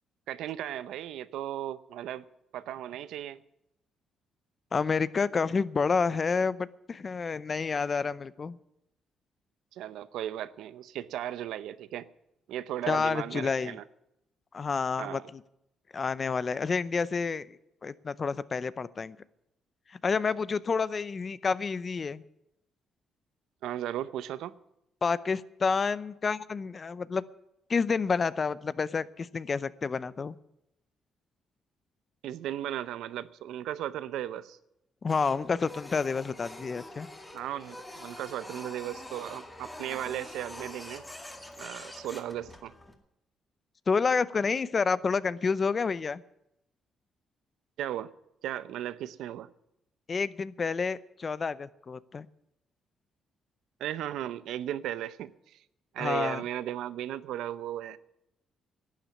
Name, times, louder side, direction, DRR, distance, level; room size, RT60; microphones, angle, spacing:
voice 1, 0.3-2.2 2.5-3.4 9.7-12.1 12.5-13.8 15.0-15.3 23.6-24.5 32.2-34.6 37.3-41.0 41.6-42.7 47.8-48.1 48.4-49.5 53.8-55.6 55.9-58.0, right 12 dB, 85° right, 0.6 m, -36 dB
voice 2, 4.7-8.6 12.9-13.8 14.5-15.4 15.9-17.6 17.8-19.2 20.0-22.2 25.0-27.2 27.7-30.4 35.0-37.1 43.9-46.2 50.1-52.3 56.0-56.4, left 5 dB, 40° left, 0.6 m, -29 dB
Printer, 35.1-42.9, left 1 dB, 10° left, 2.1 m, -45 dB
11.5 x 9.1 x 9.7 m
cardioid pair, 90°, 0 cm